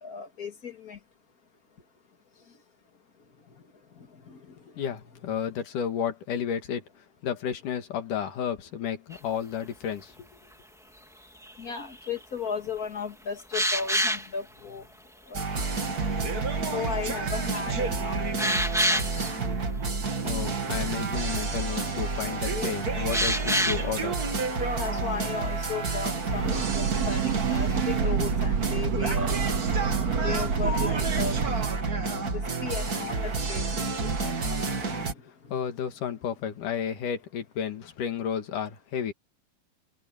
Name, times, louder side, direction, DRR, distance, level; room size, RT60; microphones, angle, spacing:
voice 1, 0.0-1.0 4.3-4.4 5.2-5.4 11.6-14.8 15.3-15.4 16.7-18.5 18.9-19.3 24.7-29.4 29.8-31.4 32.3-35.1, left 6 dB, 35° left, 1.9 m, -36 dB
voice 2, 4.8-6.8 7.2-10.2 20.2-24.2 35.5-39.1, left 8 dB, 75° left, 3.5 m, -32 dB
sound 1, 9.1-9.2 11.4-12.1 13.5-14.3 17.2-17.3 17.8-17.9 18.4-19.3 20.9-21.0 21.2-21.6 23.1-23.9 27.3-27.5, equal, ahead, 1.4 m, -26 dB
sound 2, 15.3-35.1, right 4 dB, 30° right, 2.3 m, -29 dB
Breathing / Train, 26.2-31.8, right 7 dB, 55° right, 3.2 m, -28 dB
omnidirectional pair, 3.8 m